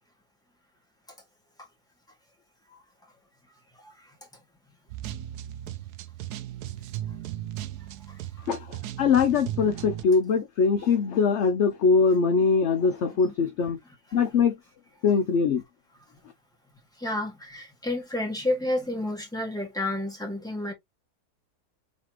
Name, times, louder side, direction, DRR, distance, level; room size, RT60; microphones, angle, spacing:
voice 1, 3.7-4.1 8.1-8.2 13.2-13.3 14.1-14.2 17.0-20.7, left 1 dB, ahead, 1.7 m, -31 dB
sound 1, 4.9-10.0, right 12 dB, 80° right, 1.1 m, -36 dB
voice 2, 8.5-13.8 14.1-14.6 15.0-15.6, left 5 dB, 60° left, 0.8 m, -22 dB
4.1 x 3.4 x 2.9 m
omnidirectional pair, 1.7 m